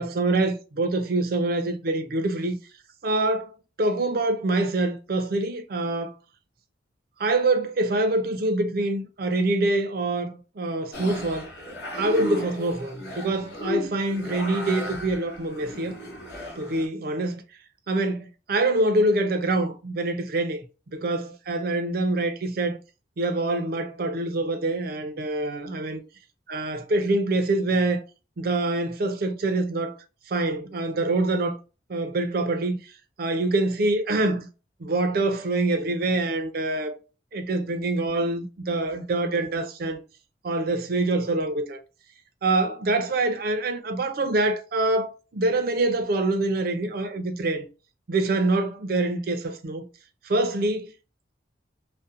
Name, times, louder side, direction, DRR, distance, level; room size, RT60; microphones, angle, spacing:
voice 1, 0.0-2.6 3.0-6.1 7.2-11.5 12.0-16.0 16.6-17.3 17.9-20.6 20.9-22.8 23.2-26.0 26.5-28.0 28.4-30.0 30.3-31.6 31.9-32.8 33.2-34.5 34.8-36.9 37.3-40.0 40.4-41.8 42.4-47.7 48.1-49.9 50.3-50.9, right 2 dB, 55° right, 0.5 m, -25 dB
sound 1, 10.9-16.9, left 1 dB, 60° left, 0.8 m, -35 dB
2.6 x 2.1 x 2.4 m
head